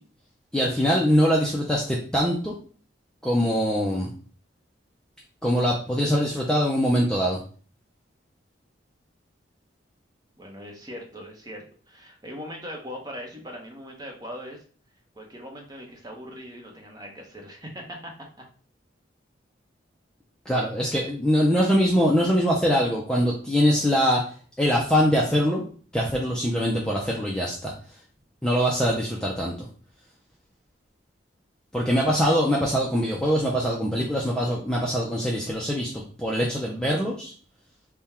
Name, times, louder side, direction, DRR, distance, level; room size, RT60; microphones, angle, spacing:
voice 1, 0.5-2.5 3.2-4.1 5.4-7.4 20.5-24.2 24.6-25.6 25.9-27.7 28.4-29.7 31.7-37.3, equal, 5° left, -3 dB, 0.4 m, -23 dB
voice 2, 10.4-14.6 15.2-18.1, equal, 20° right, 1 dB, 0.8 m, -40 dB
3.6 x 2.2 x 4.2 m, 0.42 s
head